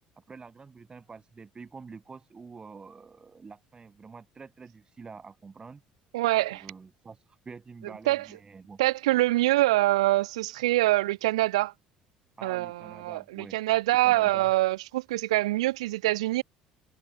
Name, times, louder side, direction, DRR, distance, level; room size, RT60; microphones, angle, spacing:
voice 1, 0.2-5.8 6.5-8.8 12.4-13.6 14.0-14.5, right 5 dB, 30° right, 6.4 m, -47 dB
voice 2, 6.1-6.6 8.1-8.3 8.8-11.7 12.4-16.4, right 17 dB, 85° right, 1.8 m, -25 dB
hypercardioid pair, 70°, 3 cm